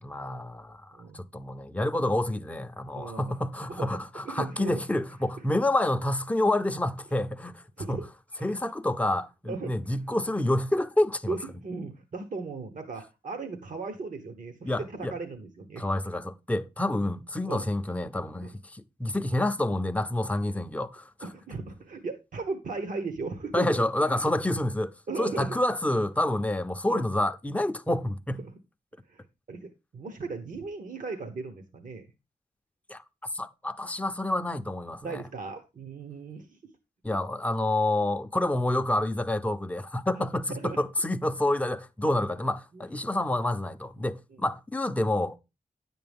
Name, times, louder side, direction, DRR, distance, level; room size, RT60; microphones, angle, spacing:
voice 1, 0.0-7.6 7.9-8.0 8.4-11.3 14.6-15.1 15.8-21.1 23.5-24.9 25.2-28.4 32.9-33.0 33.3-35.2 37.0-45.4, left 1 dB, 10° left, 0.6 m, -28 dB
voice 2, 0.9-1.2 2.9-3.3 3.7-4.8 5.4-5.5 7.8-8.0 8.3-8.7 9.5-9.7 11.3-15.9 17.5-17.6 18.4-18.5 21.2-23.7 24.1-24.3 25.1-25.6 26.9-27.0 29.0-32.1 35.0-36.6 40.2-40.3 40.6-40.8 42.7-42.8, right 4 dB, 55° right, 1.1 m, -37 dB
10.0 x 7.8 x 3.5 m
wide cardioid pair, 100°, 16 cm